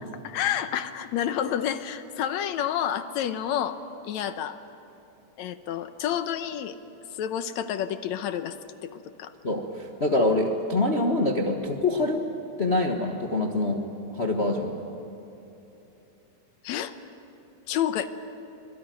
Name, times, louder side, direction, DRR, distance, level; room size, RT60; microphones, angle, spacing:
voice 1, 0.2-4.6 5.4-6.8 7.1-8.6 8.8-9.3 16.6-16.9 17.7-18.1, left 10 dB, 70° left, 10 dB, 2.0 m, -29 dB
voice 2, 9.4-12.3 12.6-13.8 14.1-14.7, left 2 dB, 50° left, 1 dB, 0.7 m, -25 dB
26.0 x 21.5 x 9.3 m, 3.0 s
omnidirectional pair, 3.7 m